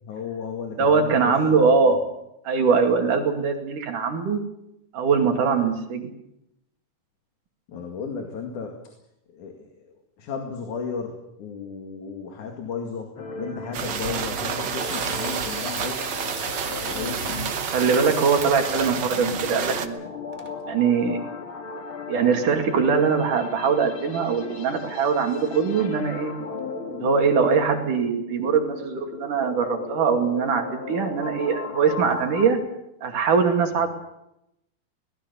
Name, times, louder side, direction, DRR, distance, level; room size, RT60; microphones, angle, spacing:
voice 1, 0.0-1.9 7.7-8.8 9.3-16.1 16.7-17.4 32.0-32.1 33.7-33.8, left 5 dB, 70° left, 3 dB, 3.6 m, -35 dB
voice 2, 0.8-2.0 2.5-4.4 4.9-6.1 17.7-20.0 20.7-21.3 22.1-26.3 26.9-32.6 33.0-33.9, right 5 dB, 80° right, 4 dB, 4.0 m, -22 dB
sound 1, 13.2-32.5, left 4 dB, 45° left, 2.2 m, -37 dB
sound 2, 13.7-19.9, right 7 dB, 60° right, 1.2 m, -30 dB
sound 3, 14.7-19.7 20.3-20.5, right 2 dB, 15° right, 1.6 m, -39 dB
23.0 x 19.0 x 7.0 m, 0.83 s
omnidirectional pair, 3.6 m